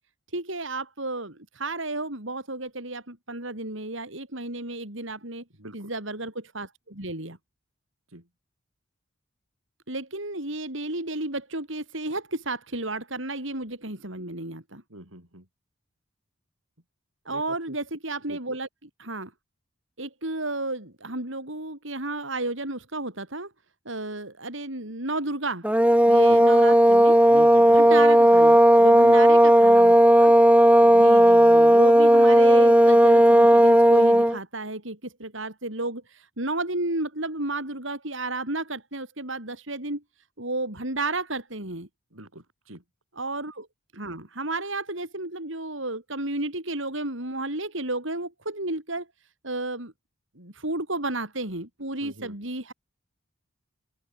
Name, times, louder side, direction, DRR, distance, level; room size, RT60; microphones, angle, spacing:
voice 1, 0.3-5.4 5.7-7.4 9.9-14.8 17.3-18.7 19.0-19.3 20.0-23.5 23.9-25.7 26.1-27.2 27.7-30.3 30.9-40.0 40.4-41.9 43.2-43.7 43.9-49.1 49.4-49.9 50.4-52.7, right 2 dB, 70° right, 5.9 m, -32 dB
voice 2, 5.6-5.9 8.1-8.3 14.9-15.5 17.3-17.8 18.3-18.4 26.2-26.7 27.3-28.0 29.0-29.2 30.8-31.1 42.1-42.8 52.0-52.4, right 1 dB, 85° right, 7.8 m, -44 dB
sound 1, 25.6-34.4, right 1 dB, 5° right, 1.2 m, -15 dB
open air
head